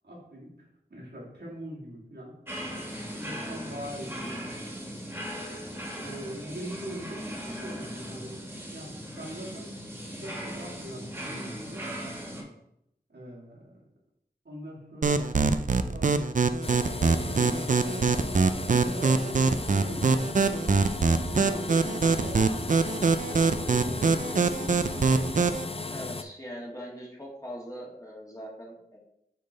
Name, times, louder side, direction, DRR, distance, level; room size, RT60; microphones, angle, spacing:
voice 1, 0.0-2.4 3.1-4.4 5.9-8.5 8.7-9.7 10.2-11.9 13.1-13.8 14.4-16.2 17.0-17.8 18.8-20.4 21.1-22.8 23.7-24.0, right 1 dB, 85° right, -6 dB, 2.2 m, -42 dB
sound 1, 2.5-12.4, equal, 15° right, 1.8 m, -38 dB
sound 2, 15.0-25.6, right 4 dB, 50° right, 0.4 m, -24 dB
sound 3, 16.6-26.2, left 3 dB, 35° left, 0.5 m, -36 dB
voice 2, 25.0-25.4 25.9-29.0, equal, 20° left, -3 dB, 1.8 m, -41 dB
6.5 x 3.8 x 4.0 m, 0.79 s
wide cardioid pair, 45°, 17 cm